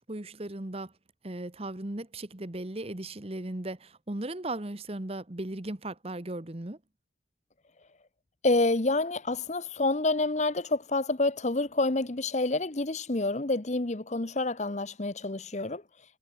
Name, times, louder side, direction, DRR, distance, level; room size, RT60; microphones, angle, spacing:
voice 1, 0.1-0.9 1.2-6.8, right 1 dB, 30° right, 1.2 m, -37 dB
voice 2, 8.4-15.8, left 2 dB, 40° left, 1.0 m, -28 dB
head